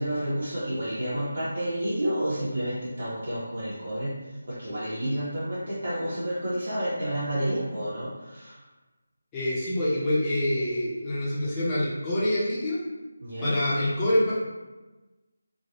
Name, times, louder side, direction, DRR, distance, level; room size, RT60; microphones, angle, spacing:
voice 1, 0.0-8.6 13.2-13.6, right 1 dB, 70° right, -10 dB, 1.3 m, -30 dB
voice 2, 9.3-12.8 13.4-14.3, left 1 dB, 15° left, -9 dB, 0.8 m, -26 dB
3.0 x 2.5 x 2.9 m, 1.2 s
figure-of-eight pair, 160°, 0 cm